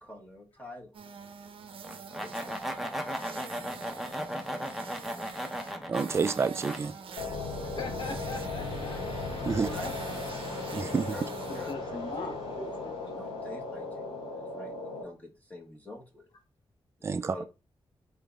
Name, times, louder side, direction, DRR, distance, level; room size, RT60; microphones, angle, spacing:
voice 1, 0.0-0.9 2.1-3.2 9.4-9.9 11.1-11.3 11.5-14.7 15.0-16.3 17.0-17.4, left 1 dB, 15° left, 1.1 m, -47 dB
sound 1, 0.9-11.7, right 6 dB, 70° right, 0.7 m, -46 dB
sound 2, 1.8-6.8, equal, ahead, 0.7 m, -36 dB
voice 2, 5.9-6.9 9.4-9.7 10.7-11.1 17.0-17.3, right 5 dB, 30° right, 0.3 m, -28 dB
sound 3, 7.2-15.0, left 3 dB, 80° left, 2.4 m, -37 dB
voice 3, 7.6-9.0 9.5-9.6 9.8-9.9 11.5-13.2, left 3 dB, 50° left, 1.2 m, -40 dB
4.0 x 3.7 x 3.5 m
wide cardioid pair, 140°, 10 cm